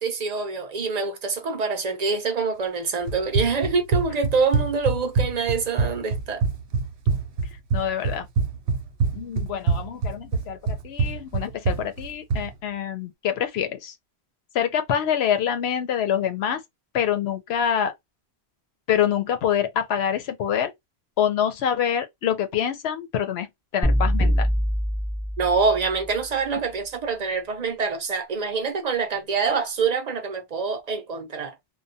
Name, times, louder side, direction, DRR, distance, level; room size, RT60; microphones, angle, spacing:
voice 1, 0.0-6.4 25.4-31.5, right 4 dB, 50° right, 0.6 m, -25 dB
Run, 3.1-12.5, right 4 dB, 85° right, 0.9 m, -25 dB
voice 2, 7.7-8.3 9.1-13.9 14.5-16.6 16.9-17.9 18.9-20.7 21.2-23.5 23.7-24.5, left 9 dB, 75° left, 0.8 m, -25 dB
sound 1, 23.8-26.1, equal, 5° left, 0.6 m, -23 dB
2.2 x 2.2 x 2.6 m
omnidirectional pair, 1.1 m